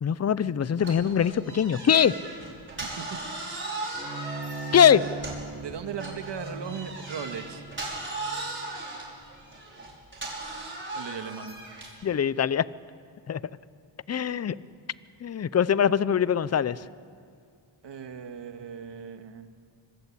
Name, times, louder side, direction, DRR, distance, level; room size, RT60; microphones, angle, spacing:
voice 1, 0.0-2.2 4.7-5.1 12.0-12.7 13.3-13.4 14.1-14.6 15.2-16.8, left 8 dB, 35° left, 18 dB, 0.6 m, -22 dB
sound 1, 0.8-5.6 6.0-12.0, right 2 dB, 25° right, 5.9 m, -37 dB
Bowed string instrument, 3.9-9.3, right 3 dB, ahead, 4.1 m, -40 dB
voice 2, 5.6-7.6 10.9-11.6 17.8-19.5, right 7 dB, 60° right, 7 dB, 1.8 m, -38 dB
25.5 x 23.0 x 8.6 m, 2.2 s
cardioid pair, 110°, 48 cm